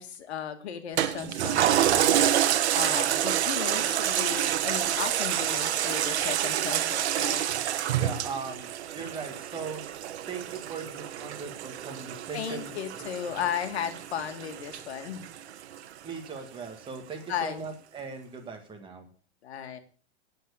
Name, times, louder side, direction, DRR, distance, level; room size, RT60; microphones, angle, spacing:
voice 1, 0.0-2.2 2.7-7.4 12.3-15.3 17.3-17.7 19.4-19.8, left 8 dB, 80° left, 8 dB, 2.0 m, -35 dB
Toilet flush, 1.0-15.8 16.3-16.4, right 11 dB, 85° right, 1.1 m, -28 dB
voice 2, 7.9-9.8 10.3-13.0 13.4-13.5 16.0-19.1, right 5 dB, 15° right, 3 dB, 1.9 m, -39 dB
9.2 x 7.8 x 8.2 m, 0.43 s
supercardioid pair, 155°, 32 cm